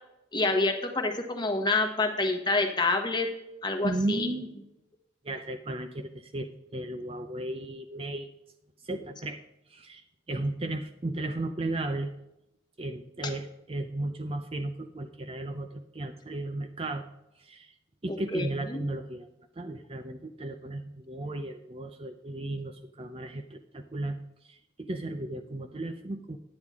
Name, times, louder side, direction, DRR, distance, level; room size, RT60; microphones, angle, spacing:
voice 1, 0.3-3.3 3.6-4.3 18.1-18.5, left 2 dB, 20° left, 4 dB, 1.2 m, -27 dB
voice 2, 3.8-4.5 5.2-8.3 8.8-9.4 9.7-12.1 12.8-17.1 17.4-17.7 18.0-19.3 19.6-26.4, right 2 dB, 30° right, 6 dB, 0.5 m, -35 dB
9.8 x 9.6 x 3.6 m, 0.89 s
head